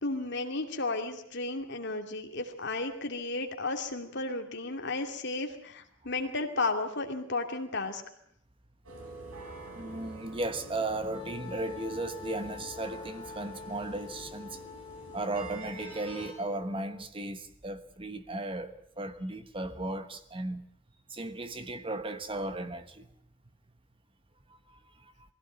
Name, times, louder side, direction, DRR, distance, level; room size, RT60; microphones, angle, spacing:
voice 1, 0.0-8.0, left 2 dB, 55° left, 2.6 m, -33 dB
sound 1, 8.8-16.3, right 2 dB, 80° right, 6.1 m, -47 dB
voice 2, 9.7-14.6 15.1-20.6 21.1-23.1 24.7-24.8, right 2 dB, 25° right, 1.2 m, -36 dB
Wind instrument woodwind instrument, 11.1-17.1, left 4 dB, 20° left, 1.5 m, -46 dB
21.5 x 16.0 x 8.8 m
head